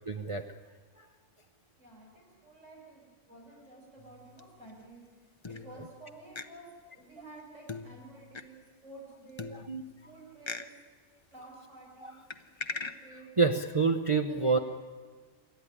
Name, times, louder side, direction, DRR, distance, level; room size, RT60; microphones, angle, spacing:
voice 1, 0.1-0.5 1.0-1.1 9.5-9.8 13.4-14.6, right 4 dB, 30° right, 4 dB, 0.7 m, -27 dB
voice 2, 1.8-9.5 10.0-10.8 11.3-13.3 13.7-13.8 14.2-14.6, right 2 dB, 75° right, -3 dB, 7.1 m, -51 dB
sound 1, 4.0-4.8 5.4-6.0 6.4-6.5 7.7-8.4 9.4-10.1 10.5-10.7 12.3-12.9, left 4 dB, 25° left, 0.8 m, -40 dB
27.5 x 12.5 x 10.0 m, 1.5 s
omnidirectional pair, 1.3 m